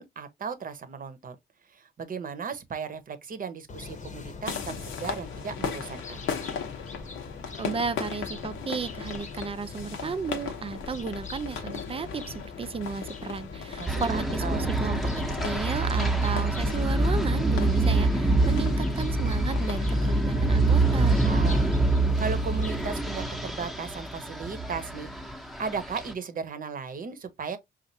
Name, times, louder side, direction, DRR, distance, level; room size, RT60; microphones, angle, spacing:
voice 1, 0.0-1.4 1.7-6.2 13.8-14.7 21.2-21.8 22.2-25.1 25.6-27.6, right 5 dB, 45° right, 0.8 m, -36 dB
sound 1, 3.7-22.9, left 5 dB, 35° left, 0.9 m, -42 dB
sound 2, 4.5-21.1, left 6 dB, 80° left, 0.9 m, -39 dB
voice 2, 7.6-15.0 15.4-21.2, right 5 dB, 30° right, 0.5 m, -34 dB
sound 3, 13.9-26.1, right 2 dB, ahead, 0.8 m, -25 dB
5.2 x 2.5 x 2.7 m
cardioid pair, 90°, 20 cm